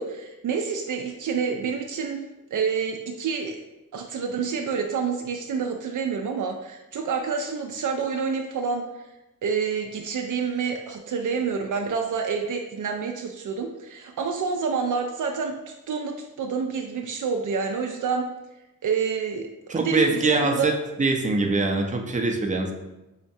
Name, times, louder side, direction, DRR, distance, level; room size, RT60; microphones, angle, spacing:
voice 1, 0.0-2.2 2.5-3.6 3.9-8.8 9.4-18.3 18.8-20.7, right 5 dB, 65° right, 3 dB, 0.5 m, -28 dB
voice 2, 19.7-22.7, right 3 dB, 20° right, 2 dB, 0.6 m, -23 dB
5.6 x 2.1 x 2.7 m, 0.97 s
cardioid pair, 55°, 34 cm